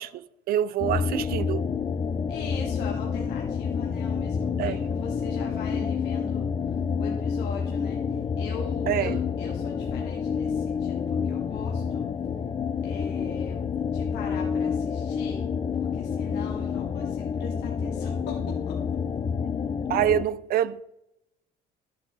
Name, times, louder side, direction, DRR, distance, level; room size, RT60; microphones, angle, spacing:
voice 1, 0.0-1.7 4.6-4.8 8.9-9.2 15.9-16.0 16.5-16.6 19.9-20.8, right 11 dB, 60° right, 0.4 m, -26 dB
sound 1, 0.8-20.2, left 6 dB, 30° left, 0.4 m, -29 dB
voice 2, 2.3-11.0 11.2-12.1 12.8-13.6 13.9-15.4 15.8-18.3 18.7-18.8, left 5 dB, 85° left, 1.5 m, -40 dB
11.5 x 8.0 x 3.2 m
cardioid pair, 110°, 17 cm